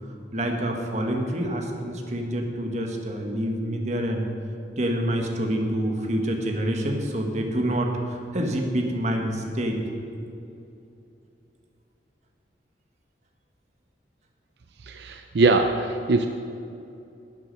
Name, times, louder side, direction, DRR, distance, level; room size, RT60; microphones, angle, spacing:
voice 1, 0.3-4.3 4.8-9.8, right 1 dB, 40° right, 2 dB, 1.4 m, -27 dB
voice 2, 14.8-16.3, right 3 dB, 70° right, 6 dB, 0.5 m, -22 dB
11.0 x 8.6 x 6.5 m, 2.7 s
head